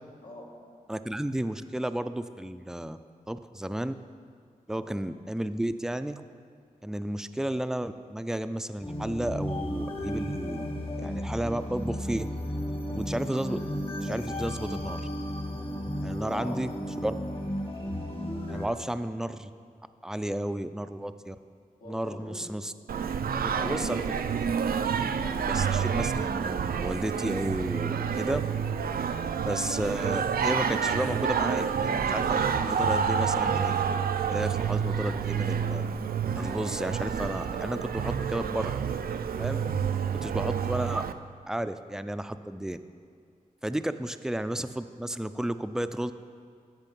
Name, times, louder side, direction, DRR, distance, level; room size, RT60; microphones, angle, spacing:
voice 1, 0.2-0.5 4.7-4.9 7.1-7.3 16.1-16.7 17.3-17.4 18.7-18.9 21.8-22.4 23.2-24.1 25.1-25.9 39.4-39.8, left 1 dB, 75° left, -3 dB, 1.9 m, -44 dB
voice 2, 0.9-3.0 3.3-3.9 4.7-6.2 6.8-10.7 11.0-12.3 12.9-13.6 14.0-15.0 16.0-16.7 17.0-17.1 18.5-19.5 20.0-21.4 21.9-22.7 23.6-24.0 24.4-24.5 25.4-28.4 29.4-34.0 34.3-35.8 36.3-38.7 39.4-39.6 40.0-41.1 41.5-42.8 43.6-46.1, right 1 dB, 5° right, 11 dB, 0.4 m, -32 dB
sound 1, 8.8-18.7, equal, 40° left, 1.6 m, -34 dB
Singing, 22.9-41.1, right 7 dB, 90° right, 0.4 m, -28 dB
14.0 x 5.3 x 5.3 m, 2.2 s
wide cardioid pair, 70°, 15 cm